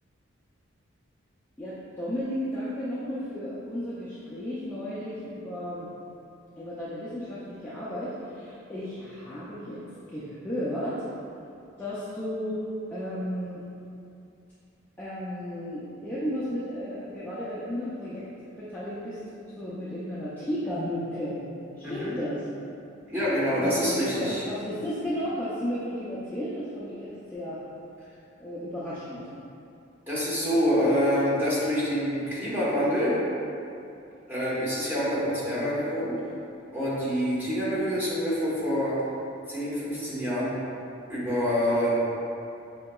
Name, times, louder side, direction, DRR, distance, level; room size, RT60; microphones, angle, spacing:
voice 1, 1.6-5.9 6.6-9.8 10.1-11.0 11.8-12.6 12.9-13.6 15.0-19.2 19.6-21.4 21.8-22.5 23.6-27.6 28.4-29.3, equal, 10° left, -12 dB, 0.4 m, -34 dB
voice 2, 21.8-22.1 23.1-24.4 30.1-33.1 34.3-36.1 36.7-38.9 39.5-40.5 41.1-42.0, equal, 10° right, -10 dB, 1.0 m, -26 dB
5.3 x 2.8 x 2.3 m, 2.6 s
head